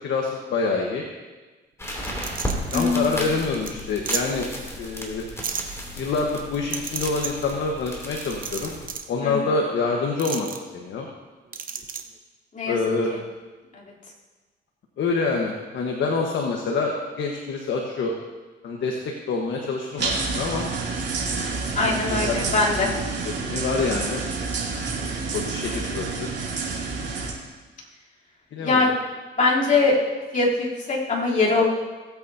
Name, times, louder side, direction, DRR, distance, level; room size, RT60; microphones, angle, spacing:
voice 1, 0.0-1.0 2.7-4.5 4.8-5.2 6.0-8.7 9.1-11.1 12.7-13.1 15.0-18.2 18.6-19.0 19.3-20.7 21.8-22.3 22.7-23.1 23.5-24.2 25.0-26.3 28.5-28.9, left 4 dB, 70° left, 0 dB, 1.4 m, -26 dB
sound 1, 1.8-8.9, equal, 15° left, 2.9 m, -34 dB
sound 2, 2.0-2.8 3.3-3.4 3.7-3.8 4.1-4.2 5.4-5.6 6.7-7.3 8.2-9.1 10.2-10.6 11.5-12.0, right 6 dB, 45° right, 0.9 m, -31 dB
voice 2, 2.7-3.1 9.2-9.4 12.5-12.8 13.7-13.8 21.8-22.9 26.8-27.2 28.6-28.9 29.4-30.0 30.3-31.7, left 3 dB, 40° left, -6 dB, 3.4 m, -22 dB
sound 3, 20.0-27.3, right 4 dB, 60° right, 3.0 m, -28 dB
18.5 x 8.5 x 2.8 m, 1.3 s
cardioid pair, 90°, 20 cm